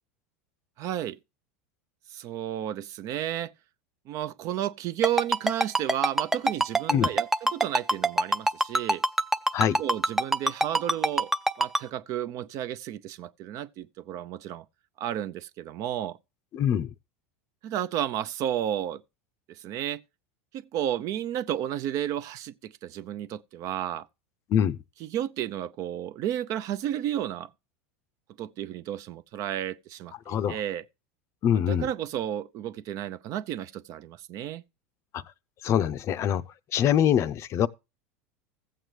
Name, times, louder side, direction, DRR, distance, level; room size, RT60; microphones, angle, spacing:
voice 1, 0.8-1.2 2.1-3.5 4.1-9.0 9.8-11.3 11.6-14.6 15.0-16.2 17.6-19.0 19.5-20.0 20.5-24.1 25.0-27.5 28.4-30.8 31.5-34.6, right 11 dB, 50° right, 0.6 m, -32 dB
Ringtone, 5.0-11.8, right 1 dB, 5° right, 0.5 m, -23 dB
voice 2, 16.5-16.9 24.5-24.8 30.3-30.6 31.4-31.9 35.1-35.2 35.6-36.4 36.7-37.7, left 9 dB, 40° left, 0.6 m, -24 dB
15.0 x 7.8 x 3.3 m
hypercardioid pair, 100°, 7 cm